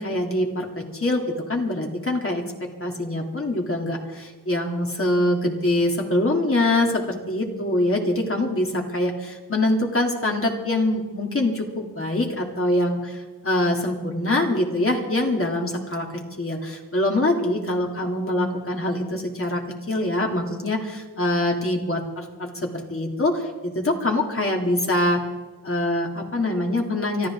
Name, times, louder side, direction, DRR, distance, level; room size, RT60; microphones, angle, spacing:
voice 1, 0.0-16.1 16.4-25.2 25.6-27.3, left 1 dB, 35° left, 0 dB, 3.3 m, -24 dB
24.5 x 14.0 x 3.9 m, 1.3 s
cardioid pair, 65°, 39 cm